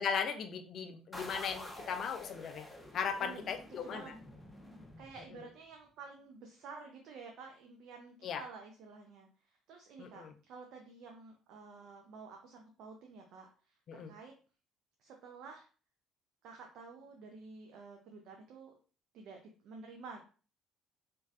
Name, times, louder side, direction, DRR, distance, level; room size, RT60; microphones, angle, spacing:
voice 1, 0.0-2.7 2.9-4.1 5.4-5.5 8.2-8.4 10.0-10.3 13.9-14.1, left 6 dB, 50° left, 8 dB, 0.4 m, -37 dB
sound 1, 1.1-5.6, left 1 dB, 15° left, 0.7 m, -49 dB
voice 2, 3.2-4.1 5.0-14.3 15.0-15.7 16.4-18.7 19.1-20.2, right 4 dB, 60° right, 2 dB, 0.4 m, -51 dB
3.1 x 2.5 x 2.3 m, 0.37 s
figure-of-eight pair, 55°, 0 cm